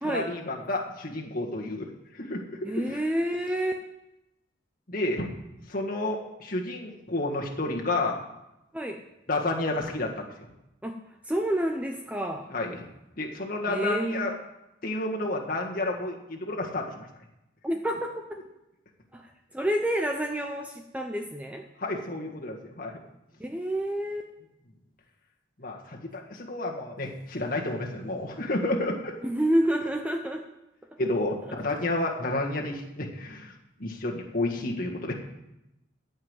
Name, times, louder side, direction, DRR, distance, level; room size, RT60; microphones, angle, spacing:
voice 1, 0.0-1.9 2.1-3.0 4.9-5.3 5.7-8.2 9.3-10.2 12.5-12.8 13.2-14.3 14.8-16.9 21.8-22.9 25.6-29.1 31.0-33.5 33.8-35.1, left 2 dB, 45° left, 0 dB, 1.7 m, -30 dB
voice 2, 2.6-3.7 8.7-9.0 10.8-10.9 11.2-12.4 13.7-14.3 17.6-18.4 19.1-21.6 23.4-24.3 29.2-30.4, right 1 dB, 5° right, 3 dB, 0.6 m, -28 dB
14.5 x 5.5 x 8.1 m, 0.91 s
head